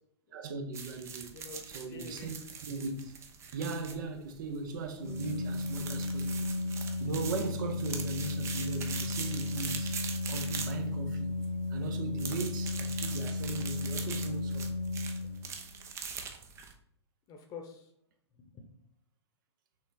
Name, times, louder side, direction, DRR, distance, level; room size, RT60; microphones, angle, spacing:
voice 1, 0.3-1.4 1.7-2.4 2.6-3.1 3.5-6.5 6.8-10.0 10.3-11.3 11.7-14.7, right 3 dB, 45° right, 0.9 m, -39 dB
sound 1, 0.7-16.7, right 6 dB, 20° right, 0.8 m, -43 dB
voice 2, 1.3-2.3 15.2-15.3 17.3-17.9 18.3-18.6, left 5 dB, 25° left, 1.1 m, -47 dB
Organ, 5.0-15.8, left 2 dB, 55° left, 1.1 m, -34 dB
6.3 x 4.0 x 4.0 m
figure-of-eight pair, 110°, 15 cm